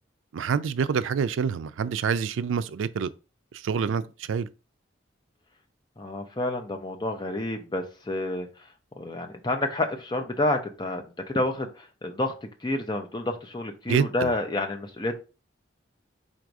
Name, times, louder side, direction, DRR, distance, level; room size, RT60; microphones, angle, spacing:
voice 1, 0.3-3.1 3.5-4.5 13.9-14.3, right 6 dB, 90° right, 0.4 m, -27 dB
voice 2, 6.0-8.5 9.0-12.3 12.6-15.1, left 2 dB, 25° left, 0.6 m, -29 dB
4.0 x 2.6 x 4.6 m
head